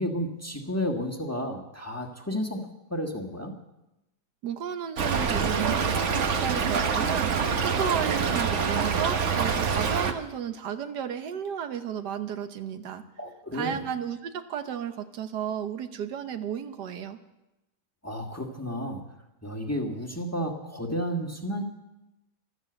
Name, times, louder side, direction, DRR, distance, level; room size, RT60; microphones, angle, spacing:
voice 1, 0.0-3.5 13.2-13.8 18.0-19.0 19.4-21.6, equal, 10° left, 2 dB, 1.5 m, -32 dB
voice 2, 4.4-13.0 13.5-17.2, right 8 dB, 85° right, 9 dB, 1.6 m, -33 dB
Stream / Trickle dribble, 5.0-10.1, right 6 dB, 50° right, 1.2 m, -26 dB
14.0 x 12.5 x 7.9 m, 0.96 s
omnidirectional pair, 1.7 m